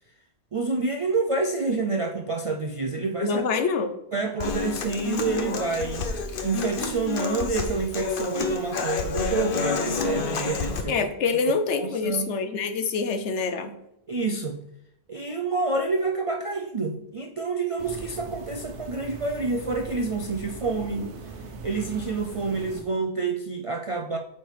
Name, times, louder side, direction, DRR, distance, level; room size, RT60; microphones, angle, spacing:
voice 1, 0.5-3.4 4.1-6.0 6.4-10.9 11.8-12.3 14.1-14.6 15.1-21.1 21.6-24.2, right 3 dB, 55° right, 3 dB, 0.3 m, -28 dB
voice 2, 3.2-3.9 10.9-13.8, left 5 dB, 80° left, 8 dB, 1.0 m, -26 dB
Human voice / Acoustic guitar, 4.4-10.8, left 5 dB, 55° left, 0.9 m, -29 dB
sound 1, 17.8-22.8, right 4 dB, 80° right, 1.1 m, -40 dB
8.3 x 4.7 x 3.3 m, 0.79 s
omnidirectional pair, 1.2 m